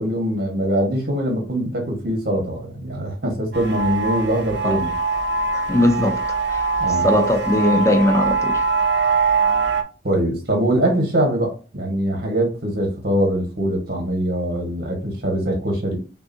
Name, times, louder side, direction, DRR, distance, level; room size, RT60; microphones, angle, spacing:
voice 1, 0.0-4.9 6.8-7.1 10.0-16.0, right 1 dB, 55° right, 1.5 m, -22 dB
Manoa siren ambience, 3.5-9.8, right 4 dB, 70° right, 0.6 m, -22 dB
voice 2, 5.5-6.7 7.0-8.6, left 1 dB, 15° left, 0.5 m, -20 dB
6.0 x 2.6 x 2.7 m
head